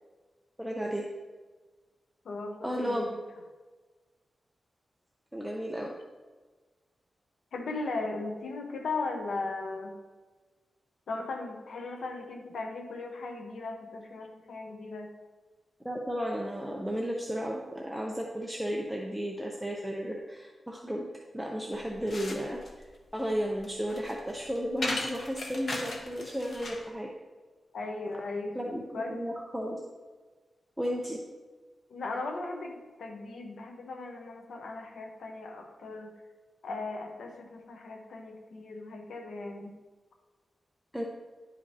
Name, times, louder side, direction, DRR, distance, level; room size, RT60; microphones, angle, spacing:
voice 1, 0.6-1.0 2.6-3.0 5.3-6.0 15.8-21.1 21.3-22.6 23.1-27.1 28.5-29.8 30.8-31.2 40.9-41.0, equal, 5° right, -1 dB, 0.5 m, -33 dB
voice 2, 2.2-3.2 7.5-10.0 11.1-15.1 27.7-28.6 28.9-29.1 31.9-36.1 36.6-39.7, left 3 dB, 85° left, 3 dB, 0.8 m, -37 dB
sound 1, 21.7-26.9, left 2 dB, 55° left, 0.9 m, -38 dB
10.5 x 5.0 x 2.7 m, 1.4 s
wide cardioid pair, 175°, 0 cm